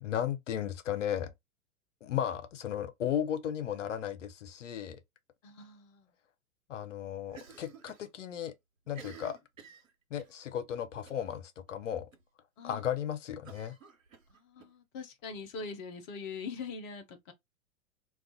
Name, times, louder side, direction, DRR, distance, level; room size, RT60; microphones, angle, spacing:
voice 1, 0.0-1.3 2.0-5.0 6.7-8.5 8.9-9.4 10.1-12.1 12.6-13.8, left 9 dB, 60° left, 0.6 m, -35 dB
voice 2, 5.4-6.1 12.6-12.8 14.3-17.3, left 5 dB, 20° left, 0.5 m, -43 dB
Cough, 7.3-8.1 8.4-8.5 8.9-10.4 11.1-11.4 11.7-11.8 12.1-12.2 13.4-14.7, right 6 dB, 70° right, 1.1 m, -52 dB
2.4 x 2.3 x 3.6 m
figure-of-eight pair, 105°, 41 cm